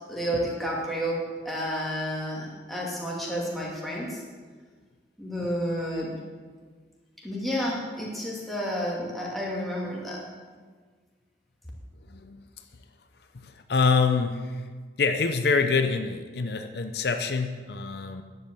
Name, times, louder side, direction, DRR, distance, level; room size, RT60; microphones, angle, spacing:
voice 1, 0.1-4.2 5.2-6.1 7.2-10.2, equal, ahead, -5 dB, 2.4 m, -30 dB
voice 2, 12.1-12.4 13.3-14.7 15.0-18.2, left 4 dB, 65° left, 7 dB, 0.6 m, -26 dB
10.5 x 7.8 x 7.6 m, 1.5 s
head